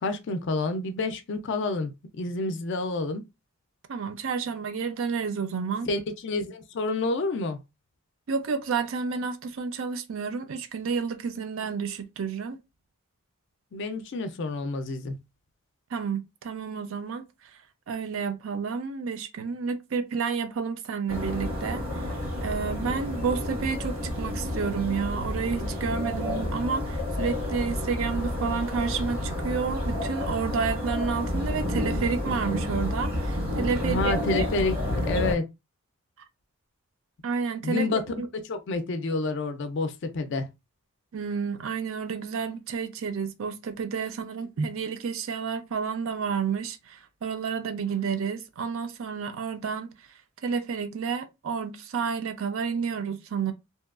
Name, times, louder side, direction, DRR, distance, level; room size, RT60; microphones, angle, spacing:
voice 1, 0.0-3.2 5.9-7.6 13.7-15.2 33.8-34.7 35.1-35.4 37.6-38.0 38.3-40.5, left 3 dB, 55° left, 0.4 m, -28 dB
voice 2, 3.9-5.9 8.3-12.6 15.9-17.2 17.9-22.1 22.4-34.5 37.2-38.3 41.1-49.9 50.4-53.5, right 5 dB, 65° right, 0.4 m, -30 dB
sound 1, 21.1-35.3, left 1 dB, 85° right, 1.4 m, -30 dB
2.8 x 2.2 x 2.3 m
head